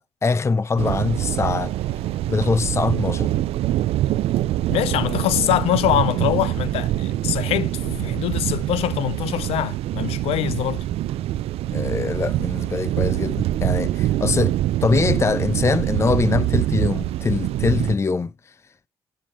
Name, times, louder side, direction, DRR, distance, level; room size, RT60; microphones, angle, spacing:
voice 1, 0.0-1.7 2.3-3.3 11.7-14.5 14.8-18.3, left 4 dB, 25° left, 0.5 m, -23 dB
sound 1, 0.8-18.0, right 14 dB, 75° right, 0.4 m, -24 dB
voice 2, 4.7-10.8, left 13 dB, 80° left, 0.6 m, -24 dB
10.0 x 6.7 x 3.0 m
supercardioid pair, 60°, 10 cm